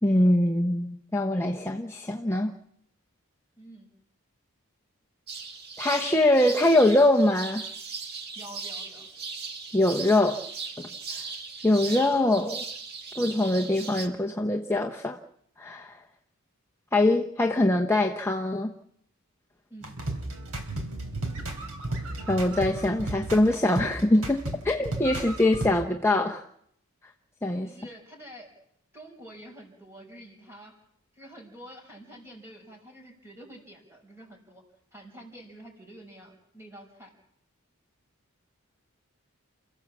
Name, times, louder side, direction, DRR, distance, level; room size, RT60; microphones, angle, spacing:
voice 1, 0.0-2.5 5.8-7.6 9.7-10.4 10.8-10.9 11.6-12.6 13.2-15.2 15.6-16.0 16.9-18.7 22.3-26.4 27.4-27.7, left 1 dB, 10° left, 1 dB, 0.9 m, -23 dB
voice 2, 3.6-3.9 8.3-9.1 19.7-19.9 25.2-25.3 27.6-28.5 28.9-30.7 31.1-34.6 34.9-37.1, right 1 dB, 10° right, 2 dB, 5.1 m, -47 dB
sound 1, 5.3-14.1, right 4 dB, 45° right, 1.8 m, -38 dB
sound 2, 19.8-25.7, right 2 dB, 80° right, 3.7 m, -34 dB
29.0 x 15.0 x 7.4 m, 0.74 s
head